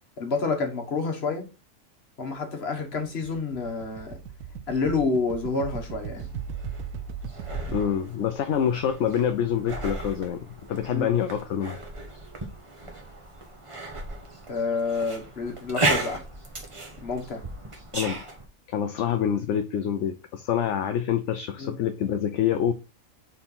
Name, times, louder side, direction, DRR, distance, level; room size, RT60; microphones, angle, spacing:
voice 1, 0.2-1.4 2.2-4.2 4.7-6.3 10.9-11.1 14.5-16.2 17.0-17.4 21.6-21.8, left 4 dB, 50° left, 1.6 m, -28 dB
sound 1, 2.8-7.8, right 7 dB, 80° right, 1.0 m, -38 dB
sound 2, 5.6-18.5, right 2 dB, 25° right, 1.1 m, -35 dB
voice 2, 7.7-11.8 17.9-18.2 18.7-22.7, left 9 dB, 65° left, 0.9 m, -26 dB
4.5 x 4.4 x 5.4 m
omnidirectional pair, 1.4 m